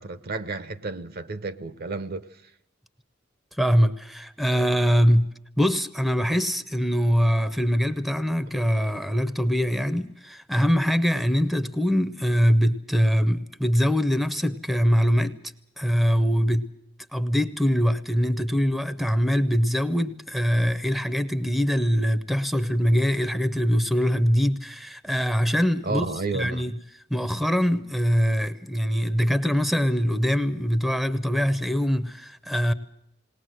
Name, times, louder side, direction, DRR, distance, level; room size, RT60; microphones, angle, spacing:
voice 1, 0.0-2.3 25.8-26.7, right 3 dB, 55° right, 0.8 m, -31 dB
voice 2, 3.6-15.4 15.8-16.7 17.1-26.1 26.3-26.7 27.1-32.7, equal, ahead, 0.7 m, -23 dB
20.0 x 19.5 x 7.7 m
head